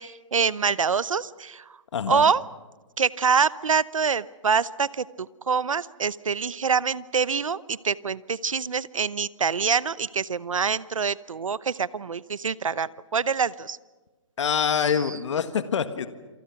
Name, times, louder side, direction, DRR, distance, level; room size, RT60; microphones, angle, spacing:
voice 1, 0.0-1.6 2.1-2.4 3.0-13.8, right 6 dB, 85° right, 19 dB, 0.8 m, -25 dB
voice 2, 1.9-2.3 14.4-16.1, left 7 dB, 65° left, 10 dB, 1.7 m, -25 dB
27.5 x 27.5 x 5.9 m, 1.2 s
hypercardioid pair, 145°, 16 cm